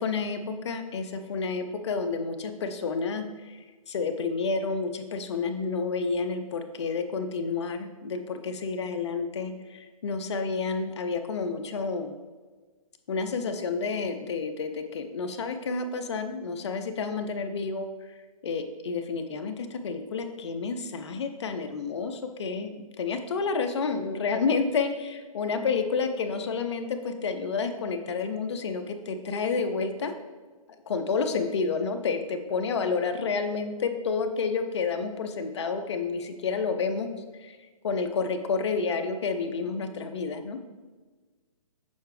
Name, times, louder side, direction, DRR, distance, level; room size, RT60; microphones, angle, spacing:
voice 1, 0.0-3.6 3.9-12.1 13.1-17.9 18.4-30.1 30.9-37.1 37.4-37.6 37.8-40.6, left 4 dB, 50° left, 7 dB, 0.6 m, -30 dB
7.1 x 4.6 x 3.2 m, 1.4 s
hypercardioid pair, 160°, 19 cm